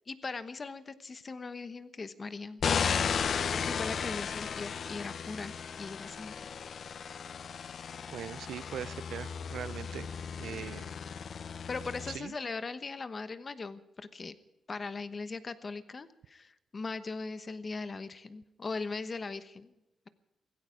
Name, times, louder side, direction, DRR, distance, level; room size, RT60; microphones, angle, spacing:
voice 1, 0.1-2.6 3.5-6.5 11.7-14.3 14.7-19.7, left 4 dB, 30° left, 12 dB, 1.1 m, -39 dB
sound 1, 2.6-12.2, left 6 dB, 55° left, 0.7 m, -35 dB
voice 2, 8.1-10.1 10.4-10.9 12.1-12.3, right 9 dB, 80° right, 19 dB, 0.5 m, -41 dB
17.0 x 16.5 x 5.1 m, 0.95 s
wide cardioid pair, 135°, 0 cm